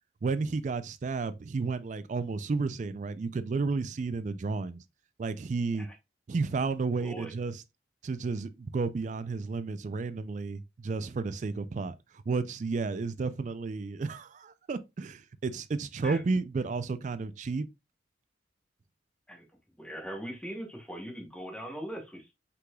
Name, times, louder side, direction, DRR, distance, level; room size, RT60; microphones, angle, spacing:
voice 1, 0.2-4.8 5.2-5.9 6.3-7.6 8.0-17.7, right 4 dB, 40° right, 0.3 m, -32 dB
voice 2, 7.0-7.3 16.0-16.2 19.3-19.4 19.8-22.3, equal, 5° left, 1.0 m, -40 dB
5.6 x 3.8 x 2.3 m
head